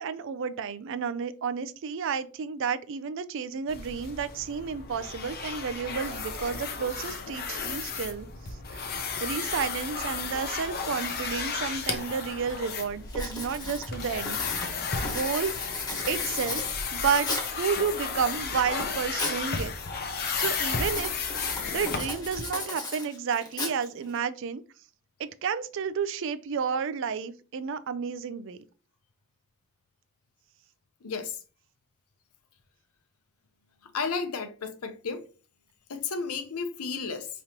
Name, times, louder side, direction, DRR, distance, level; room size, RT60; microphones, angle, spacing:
voice 1, 0.0-8.3 8.7-8.8 9.2-14.4 15.0-15.6 16.1-16.6 16.9-19.7 20.4-21.1 21.7-24.6 25.2-28.6, right 6 dB, 60° right, 0.4 m, -31 dB
sound 1, 3.7-22.5, left 5 dB, 45° left, 0.7 m, -33 dB
Writing, 11.9-12.0 12.5-12.7 13.1-17.6 18.2-19.4 19.7-20.2 20.7-24.2, left 2 dB, 20° left, 1.0 m, -36 dB
voice 2, 31.0-31.4 33.9-35.2 35.9-37.3, left 5 dB, 90° left, 0.7 m, -32 dB
5.0 x 3.0 x 2.9 m
head